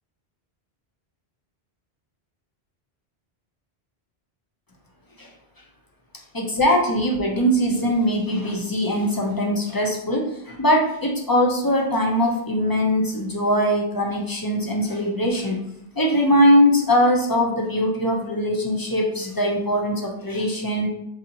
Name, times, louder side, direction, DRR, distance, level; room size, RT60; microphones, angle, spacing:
voice 1, 6.3-15.6 16.0-20.9, equal, 35° left, -1 dB, 0.4 m, -21 dB
4.0 x 2.8 x 2.6 m, 0.80 s
omnidirectional pair, 1.1 m